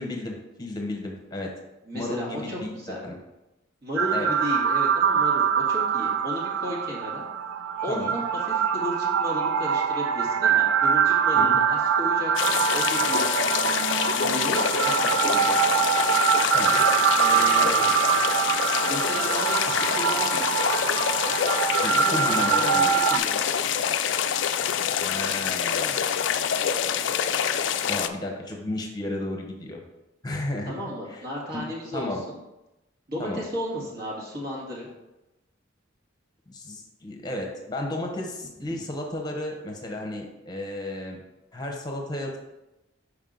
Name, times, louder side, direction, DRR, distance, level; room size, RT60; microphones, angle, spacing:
voice 1, 0.0-1.5 1.9-3.2 4.1-4.3 7.9-8.1 11.4-11.6 16.5-16.8 21.8-22.9 25.0-26.1 27.9-29.8 30.2-30.7 31.1-31.2 31.5-31.6 31.9-32.2 33.2-33.5 36.5-41.2 41.5-42.4, left 1 dB, 20° left, 2 dB, 0.9 m, -33 dB
voice 2, 1.9-3.0 3.8-7.2 7.8-13.6 14.1-15.9 17.1-17.9 18.9-20.5 21.9-23.4 30.7-32.4 33.1-34.9 38.7-38.8, equal, 50° right, -4 dB, 1.6 m, -34 dB
sound 1, 4.0-23.2, right 7 dB, 80° right, 0.4 m, -24 dB
sound 2, 12.4-28.1, left 8 dB, 60° left, 0.3 m, -26 dB
5.5 x 4.8 x 3.8 m, 0.97 s
head